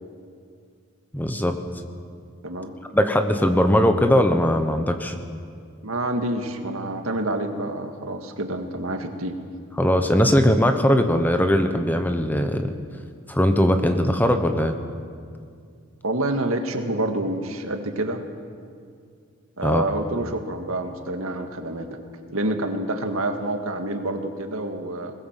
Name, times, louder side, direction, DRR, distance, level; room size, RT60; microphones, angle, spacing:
voice 1, 1.1-1.6 2.9-5.1 9.8-12.7 13.3-14.7 19.6-19.8, equal, 10° left, 7 dB, 1.1 m, -20 dB
voice 2, 5.8-9.4 16.0-18.2 19.6-22.0 22.3-25.1, right 1 dB, 85° right, 5 dB, 1.9 m, -27 dB
21.5 x 18.5 x 7.5 m, 2.2 s
head